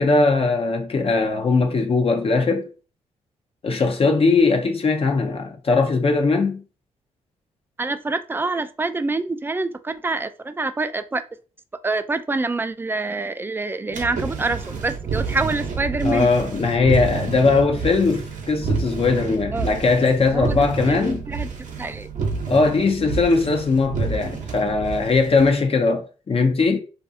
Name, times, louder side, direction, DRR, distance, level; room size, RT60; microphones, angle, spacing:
voice 1, 0.0-2.7 3.6-6.6 16.0-21.3 22.5-26.8, left 3 dB, 40° left, 0.6 m, -20 dB
voice 2, 7.8-11.2 11.8-16.3 19.5-19.7 20.3-21.5 21.8-22.1, right 3 dB, 15° right, 0.3 m, -26 dB
sound 1, 13.9-25.5, right 5 dB, 60° right, 0.8 m, -29 dB
2.5 x 2.3 x 2.6 m
supercardioid pair, 50°, 14 cm